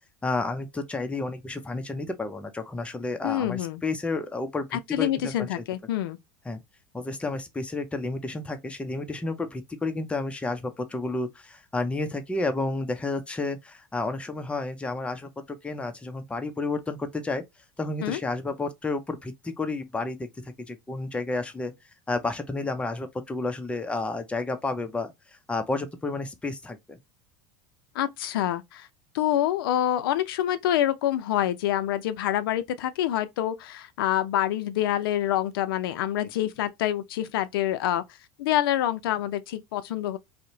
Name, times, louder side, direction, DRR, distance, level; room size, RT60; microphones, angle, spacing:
voice 1, 0.2-5.6 6.4-6.6 6.9-17.4 17.8-21.7 22.1-25.1 25.5-27.0, left 3 dB, 10° left, 0.5 m, -31 dB
voice 2, 3.2-3.8 4.7-6.2 18.0-18.2 28.0-28.9 29.1-38.0 38.4-40.2, left 12 dB, 85° left, 0.4 m, -26 dB
2.7 x 2.1 x 2.6 m
supercardioid pair, 105°, 12 cm